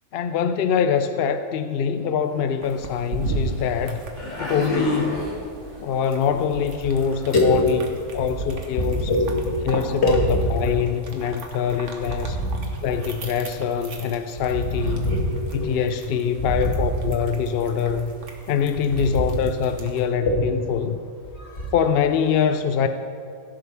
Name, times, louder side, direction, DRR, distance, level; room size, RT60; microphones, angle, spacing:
voice 1, 0.1-4.0 4.4-5.3 5.8-7.8 8.1-9.1 9.6-12.4 12.8-15.1 15.5-18.1 18.5-21.0 21.7-22.9, left 7 dB, 65° left, 9 dB, 0.6 m, -24 dB
sound 1, 2.3-2.4 3.2-3.8 4.2-5.8 6.2-6.4 6.8-7.5 8.2-8.3, left 1 dB, 30° left, 2.4 m, -30 dB
sound 2, 2.6-20.1, right 3 dB, 60° right, 1.5 m, -38 dB
voice 2, 7.3-7.6 8.8-9.6 10.0-10.5 11.8-12.6 14.5-15.7 16.4-16.7 17.9-18.0 19.0-19.3 20.3-20.4 21.4-21.7, left 1 dB, 50° left, -2 dB, 2.3 m, -23 dB
16.5 x 11.0 x 3.5 m, 2.4 s
omnidirectional pair, 1.5 m